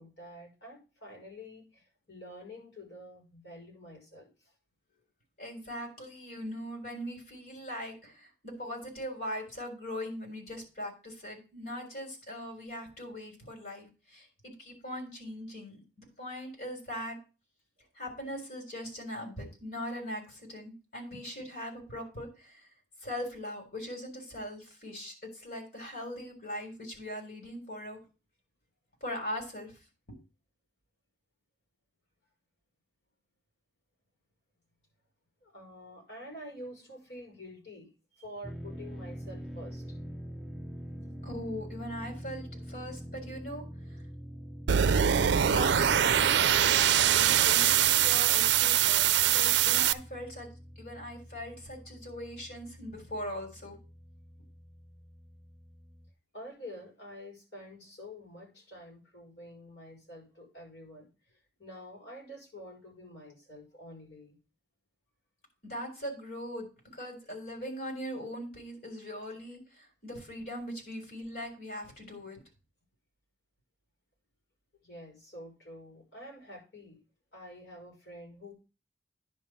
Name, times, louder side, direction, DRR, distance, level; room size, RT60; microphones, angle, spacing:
voice 1, 0.0-4.3 35.4-39.8 40.9-41.1 56.3-61.1 61.6-64.4 74.8-77.0 77.3-78.5, equal, 80° left, -1 dB, 5.6 m, -48 dB
voice 2, 5.4-17.2 18.0-22.6 23.0-28.0 29.0-29.8 30.1-30.2 41.2-43.6 45.5-50.5 50.8-53.8 65.6-72.4, equal, 50° left, 1 dB, 3.8 m, -40 dB
sound 1, 38.4-56.1, equal, ahead, 0.6 m, -45 dB
sound 2, 44.7-49.9, right 10 dB, 80° right, 0.4 m, -23 dB
10.0 x 3.8 x 7.4 m, 0.31 s
head